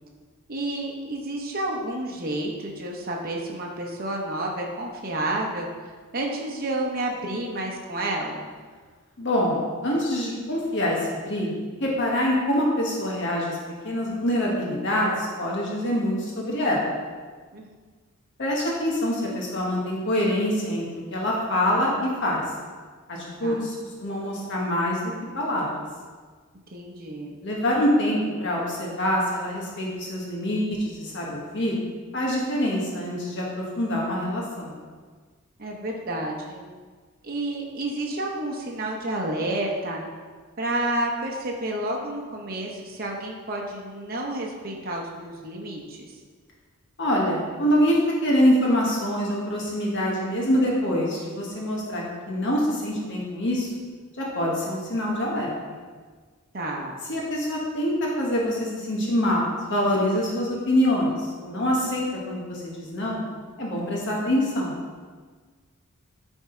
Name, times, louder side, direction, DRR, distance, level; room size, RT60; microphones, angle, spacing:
voice 1, 0.5-5.7 6.1-8.5 17.5-17.7 23.4-23.7 26.7-27.4 35.6-36.6 37.2-40.0 40.6-46.1 56.5-56.9, right 1 dB, 40° right, -1 dB, 0.8 m, -30 dB
voice 2, 9.2-11.5 11.8-13.6 13.8-16.9 18.4-22.4 23.1-23.7 24.0-25.8 27.4-31.7 32.1-34.7 47.0-53.7 54.2-55.5 57.1-61.1 61.4-63.2 63.6-64.7, equal, 55° left, -3 dB, 1.2 m, -25 dB
9.4 x 3.6 x 4.3 m, 1.5 s
head